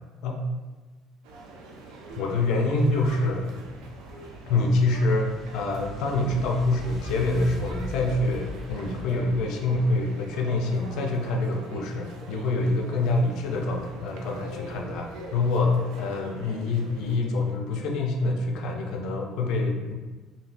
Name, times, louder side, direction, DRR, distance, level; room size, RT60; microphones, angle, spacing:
sound 1, 1.2-17.2, right 2 dB, 90° right, 0.4 m, -44 dB
sound 2, 2.1-2.5 3.1-3.5 4.1-4.4 5.1-5.4 6.1-6.4 7.1-7.4 8.1-8.3 9.1-9.4, right 2 dB, 65° right, 0.9 m, -46 dB
voice 1, 2.2-3.6 4.5-19.9, left 2 dB, 70° left, 2 dB, 0.5 m, -26 dB
sound 3, 4.0-10.8, equal, 35° right, 0.9 m, -41 dB
2.6 x 2.4 x 3.2 m, 1.3 s
cardioid pair, 135°, 0 cm